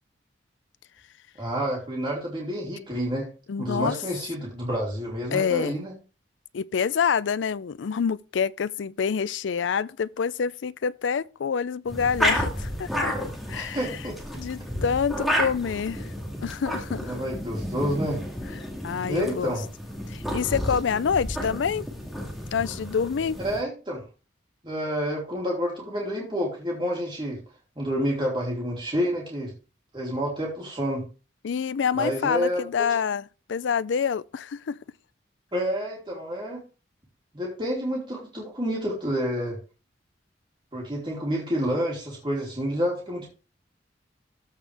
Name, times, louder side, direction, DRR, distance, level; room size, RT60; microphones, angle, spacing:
voice 1, 1.4-3.3 3.6-5.9 13.5-14.2 17.0-18.2 19.1-19.6 23.4-24.0 24.6-27.4 27.8-29.5 29.9-31.0 31.9-32.6 35.5-36.6 37.3-39.6 40.7-43.3, equal, 25° right, 3.0 m, -29 dB
voice 2, 3.5-4.0 5.3-5.8 6.5-13.2 13.5-13.9 14.4-16.1 16.4-17.1 18.8-19.5 20.1-21.9 22.5-23.4 31.4-34.8, left 6 dB, 80° left, 0.4 m, -27 dB
sound 1, 11.9-23.6, equal, ahead, 2.2 m, -31 dB
14.0 x 5.2 x 3.4 m
head